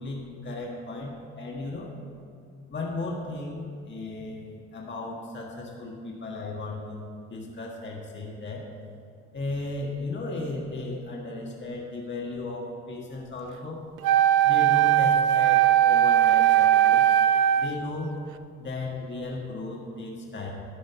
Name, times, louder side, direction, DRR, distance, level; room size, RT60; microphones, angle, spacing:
voice 1, 0.0-1.9 2.7-8.6 9.3-13.8 14.4-17.1 17.5-18.1 18.6-20.5, left 2 dB, 40° left, -2 dB, 1.7 m, -35 dB
Wind instrument woodwind instrument, 14.0-17.8, right 11 dB, 80° right, 0.5 m, -19 dB
11.5 x 5.2 x 7.3 m, 2.3 s
cardioid pair, 90°, 30 cm